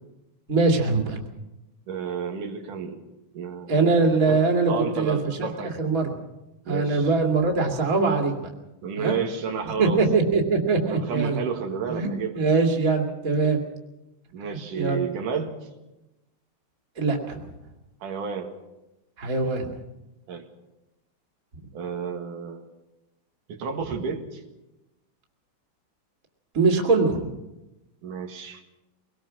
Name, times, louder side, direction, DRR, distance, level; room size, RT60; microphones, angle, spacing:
voice 1, 0.5-1.2 3.7-6.1 6.7-8.3 9.0-9.2 9.6-11.4 11.9-12.1 12.3-13.6 14.8-15.0 17.0-17.4 19.2-19.7 26.5-27.3, right 3 dB, 30° right, 2 dB, 2.5 m, -22 dB
voice 2, 1.9-3.0 3.3-4.4 4.7-5.8 6.7-7.1 8.8-10.0 10.9-12.4 13.4-13.6 14.3-15.6 18.0-18.5 20.3-20.5 21.7-22.6 23.5-24.4 28.0-28.6, right 6 dB, 80° right, 3 dB, 3.4 m, -31 dB
23.5 x 19.5 x 6.3 m, 0.96 s
omnidirectional pair, 3.6 m